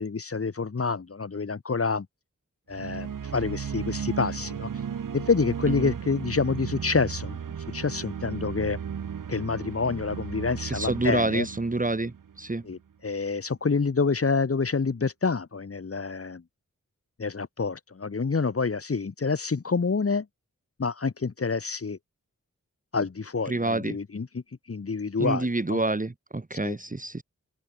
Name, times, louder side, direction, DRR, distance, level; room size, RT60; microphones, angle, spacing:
voice 1, 0.0-2.1 2.7-4.7 5.1-7.4 7.7-8.8 9.3-11.5 12.6-16.4 17.2-20.2 20.8-22.0 22.9-24.4 24.7-25.8 26.6-26.7, left 4 dB, 45° left, 1.4 m, -27 dB
sound 1, 2.7-12.7, right 7 dB, 90° right, 1.3 m, -35 dB
voice 2, 10.7-12.1 12.4-12.6 23.5-24.0 25.2-27.2, right 2 dB, 25° right, 1.5 m, -27 dB
cardioid pair, 50°, 31 cm